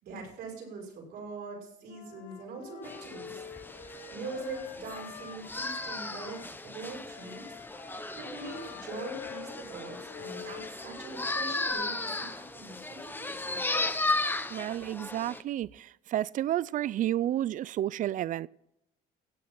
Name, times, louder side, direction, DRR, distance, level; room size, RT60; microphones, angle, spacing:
voice 1, 0.0-3.4 4.1-7.4 8.1-13.6, right 4 dB, 75° right, 6.4 m, -43 dB
Wind instrument woodwind instrument, 1.9-6.5 7.1-11.9, left 7 dB, 90° left, 2.9 m, -46 dB
sound 1, 2.8-15.4, left 2 dB, 10° left, 0.8 m, -36 dB
voice 2, 14.5-18.5, right 12 dB, 50° right, 0.4 m, -31 dB
16.5 x 8.5 x 5.9 m
cardioid pair, 110°, 17 cm